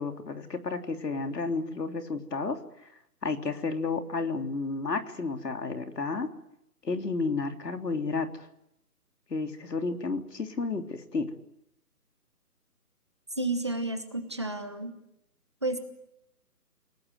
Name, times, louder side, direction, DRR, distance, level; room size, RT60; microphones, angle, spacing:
voice 1, 0.0-2.6 3.2-6.3 6.8-8.5 9.3-11.3, left 4 dB, 80° left, 6 dB, 3.6 m, -31 dB
voice 2, 13.4-14.9 15.6-15.8, right 2 dB, 15° right, 7 dB, 1.2 m, -31 dB
29.5 x 19.0 x 9.5 m, 0.83 s
hypercardioid pair, 175°, 48 cm